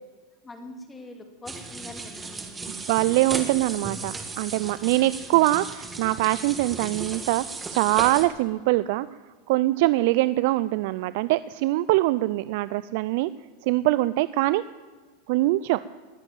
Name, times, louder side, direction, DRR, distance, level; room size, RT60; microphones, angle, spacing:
voice 1, 0.4-2.8, left 2 dB, 10° left, 5 dB, 2.2 m, -44 dB
sound 1, 1.5-8.3, right 3 dB, 10° right, 1.6 m, -36 dB
voice 2, 2.7-7.4 7.7-9.1 9.5-13.3 13.6-14.6 15.3-15.8, right 18 dB, 60° right, 17 dB, 0.4 m, -23 dB
19.5 x 7.3 x 9.2 m, 1.4 s
supercardioid pair, 150°, 0 cm